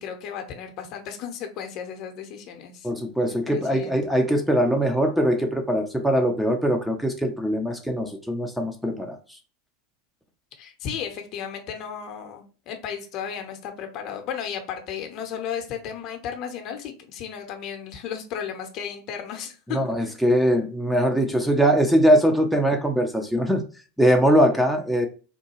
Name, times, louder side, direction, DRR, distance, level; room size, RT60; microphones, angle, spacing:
voice 1, 0.0-2.9 3.3-4.0 10.6-20.1, left 8 dB, 50° left, 5 dB, 0.7 m, -34 dB
voice 2, 2.8-9.2 19.7-23.6 24.0-25.1, equal, ahead, 3 dB, 0.5 m, -21 dB
3.6 x 2.2 x 2.9 m, 0.36 s
hypercardioid pair, 85°, 0 cm